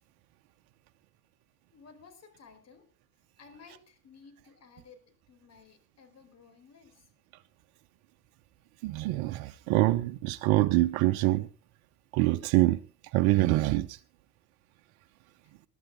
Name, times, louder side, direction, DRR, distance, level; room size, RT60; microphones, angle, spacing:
voice 1, 1.7-2.9 3.4-7.1, left 5 dB, 40° left, 4.7 m, -55 dB
voice 2, 8.8-11.5 12.1-12.8 13.1-14.0, right 17 dB, 65° right, 1.1 m, -25 dB
21.0 x 12.0 x 3.8 m
hypercardioid pair, 80°, 41 cm